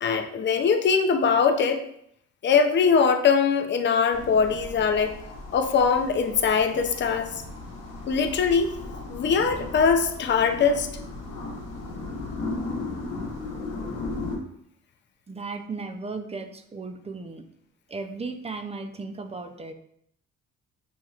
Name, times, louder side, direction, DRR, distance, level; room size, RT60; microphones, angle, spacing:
voice 1, 0.0-1.8 2.4-5.2 5.5-7.3 8.1-8.7 9.1-10.9, left 6 dB, 40° left, 6 dB, 0.5 m, -22 dB
sound 1, 4.1-14.4, left 3 dB, 60° left, 1.0 m, -36 dB
voice 2, 15.3-17.4 17.9-19.7, right 3 dB, 20° right, 7 dB, 0.4 m, -35 dB
6.2 x 2.8 x 2.4 m, 0.70 s
cardioid pair, 90°, 30 cm